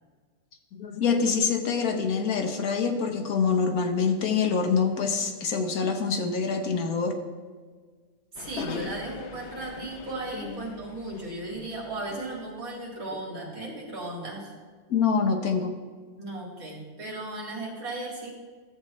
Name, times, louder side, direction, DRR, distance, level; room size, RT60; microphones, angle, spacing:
voice 1, 0.7-7.2 10.3-10.5 14.9-15.7, left 5 dB, 80° left, 5 dB, 1.5 m, -25 dB
voice 2, 8.3-14.5 16.2-18.3, right 2 dB, 70° right, -4 dB, 2.9 m, -36 dB
sound 1, 8.4-12.1, left 7 dB, 65° left, 0.8 m, -41 dB
13.5 x 7.6 x 3.2 m, 1.5 s
omnidirectional pair, 1.5 m